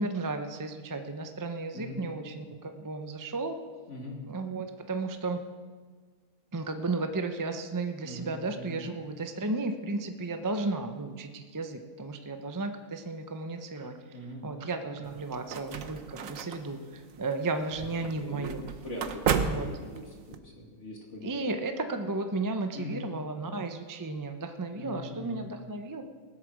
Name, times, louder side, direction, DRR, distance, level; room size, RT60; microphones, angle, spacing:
voice 1, 0.0-3.6 4.2-5.4 6.5-14.2 14.4-18.6 19.4-19.7 21.2-26.0, right 3 dB, 20° right, 6 dB, 0.5 m, -34 dB
voice 2, 1.7-2.1 3.9-4.2 8.0-8.8 14.1-14.4 18.0-21.4 22.7-23.0 24.8-25.5, left 1 dB, 50° left, -1 dB, 2.9 m, -42 dB
sound 1, 15.0-20.4, right 6 dB, 65° right, 1.2 m, -34 dB
19.0 x 8.0 x 6.2 m, 1.5 s
omnidirectional pair, 1.5 m